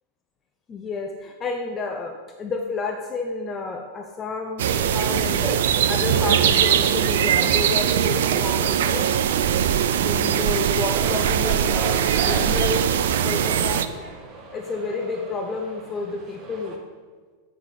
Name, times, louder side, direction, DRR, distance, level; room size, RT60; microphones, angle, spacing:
voice 1, 0.7-9.1 10.0-12.9 13.2-13.9 14.5-16.8, left 4 dB, 25° left, 3 dB, 0.9 m, -30 dB
sound 1, 4.6-13.9, right 9 dB, 60° right, 0.5 m, -21 dB
sound 2, 10.6-16.8, right 3 dB, 30° right, 1.7 m, -38 dB
8.3 x 7.1 x 8.0 m, 1.5 s
figure-of-eight pair, 90°, 0 cm